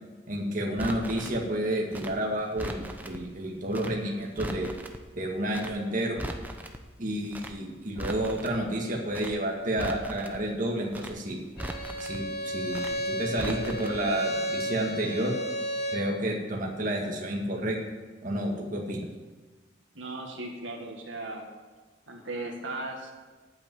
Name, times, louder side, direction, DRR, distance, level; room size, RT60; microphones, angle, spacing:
voice 1, 0.3-4.7 5.2-6.2 7.0-11.4 12.0-15.4 15.9-17.8 18.2-19.0, right 1 dB, 45° right, -1 dB, 1.9 m, -30 dB
Crackle, 0.8-1.4 1.9-3.2 3.7-3.9 4.2-5.0 5.5-5.7 6.0-6.8 7.3-7.5 7.8-8.6 9.1-9.3 9.6-10.4 10.9-11.1 11.4-12.2 12.7-12.9 13.2-14.0 14.2-14.4, right 1 dB, 10° right, 0.8 m, -38 dB
Bowed string instrument, 11.6-16.1, equal, 55° left, 2.2 m, -33 dB
voice 2, 20.0-21.5 22.1-23.1, right 2 dB, 85° right, 1 dB, 1.8 m, -37 dB
8.6 x 8.3 x 9.3 m, 1.3 s
head